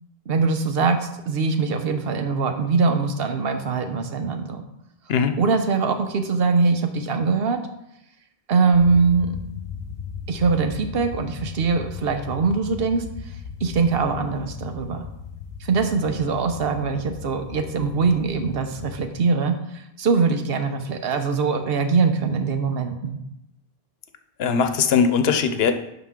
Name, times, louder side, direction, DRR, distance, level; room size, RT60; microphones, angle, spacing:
voice 1, 0.3-4.6 5.4-7.6 8.5-9.4 10.3-13.0 13.6-15.1 15.6-23.2, right 4 dB, 75° right, 7 dB, 1.0 m, -22 dB
sound 1, 8.7-19.1, left 6 dB, 45° left, 0.9 m, -37 dB
voice 2, 24.4-25.7, left 6 dB, 75° left, 8 dB, 0.9 m, -20 dB
11.0 x 3.9 x 3.7 m, 0.83 s
omnidirectional pair, 1.0 m